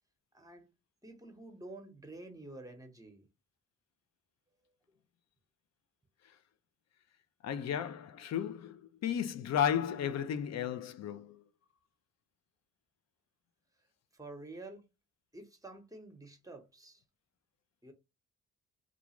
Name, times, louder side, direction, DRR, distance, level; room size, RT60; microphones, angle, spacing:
voice 1, 0.3-0.7 1.0-3.3 14.1-14.9 15.3-17.0 17.8-17.9, right 2 dB, 10° right, 0.9 m, -49 dB
voice 2, 7.4-11.4, left 8 dB, 55° left, 0.5 m, -34 dB
2.4 x 2.4 x 2.9 m
supercardioid pair, 55°, 32 cm